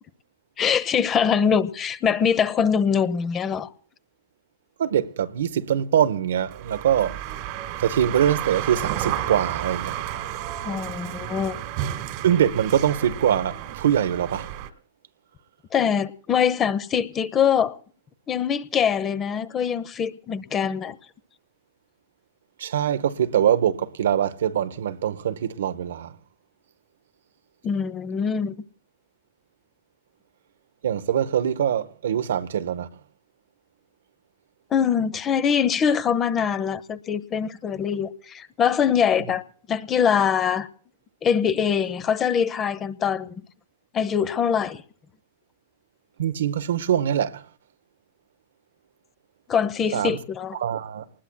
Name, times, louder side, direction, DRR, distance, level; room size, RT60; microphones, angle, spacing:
voice 1, 0.6-3.7 10.6-11.6 15.7-17.7 18.3-21.0 27.6-28.5 34.7-39.4 39.7-40.7 41.2-43.3 43.9-44.8 49.5-50.6, left 7 dB, 25° left, 0.8 m, -23 dB
voice 2, 4.8-7.2 7.8-10.0 12.2-14.6 22.6-26.1 30.8-32.9 46.2-47.5 49.9-50.2 50.5-51.1, right 9 dB, 75° right, 0.8 m, -23 dB
sound 1, 6.5-14.7, right 12 dB, 50° right, 1.4 m, -32 dB
29.0 x 20.0 x 2.2 m
hypercardioid pair, 115°, 0 cm